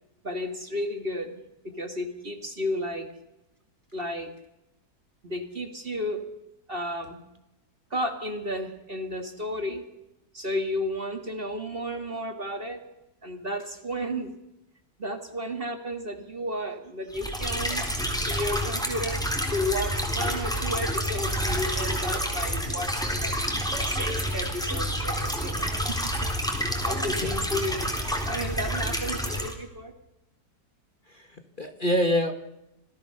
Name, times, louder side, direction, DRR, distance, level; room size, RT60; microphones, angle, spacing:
voice 1, 0.2-1.4 1.6-3.1 3.9-4.3 5.2-6.2 6.7-7.2 7.9-9.8 10.3-12.8 13.2-14.3 15.0-17.9 18.3-19.2 19.5-23.4 23.9-26.0 26.9-27.9 28.3-29.9, equal, 30° right, 7 dB, 2.1 m, -32 dB
sound 1, 17.1-29.5, equal, ahead, 3.8 m, -28 dB
voice 2, 31.1-32.3, equal, 30° left, 7 dB, 1.7 m, -26 dB
26.5 x 17.5 x 6.7 m, 0.89 s
omnidirectional pair, 1.9 m